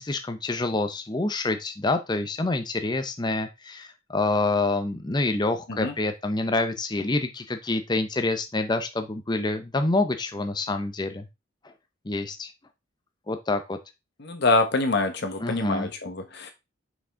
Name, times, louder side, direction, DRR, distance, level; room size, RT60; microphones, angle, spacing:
voice 1, 0.0-11.3 12.1-12.5 13.3-13.8 15.4-15.9, left 2 dB, 20° left, 7 dB, 0.6 m, -27 dB
voice 2, 14.2-16.5, left 3 dB, 55° left, 6 dB, 1.2 m, -25 dB
5.9 x 5.0 x 3.6 m, 0.24 s
head